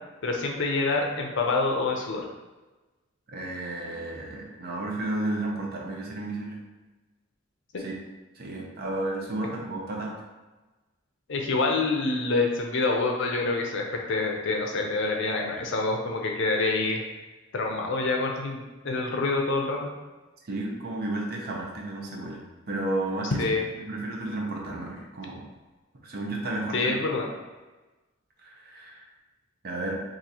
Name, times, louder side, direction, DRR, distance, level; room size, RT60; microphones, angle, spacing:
voice 1, 0.2-2.3 7.7-7.8 11.3-17.0 17.5-19.9 23.4-23.6 26.7-27.3, left 3 dB, 65° left, 1 dB, 0.6 m, -26 dB
voice 2, 3.3-6.6 7.8-7.9 8.4-10.1 20.4-23.4 23.8-25.4 26.0-26.9 28.4-29.0 29.6-29.9, right 2 dB, 50° right, -1 dB, 0.7 m, -32 dB
2.9 x 2.6 x 4.0 m, 1.2 s
head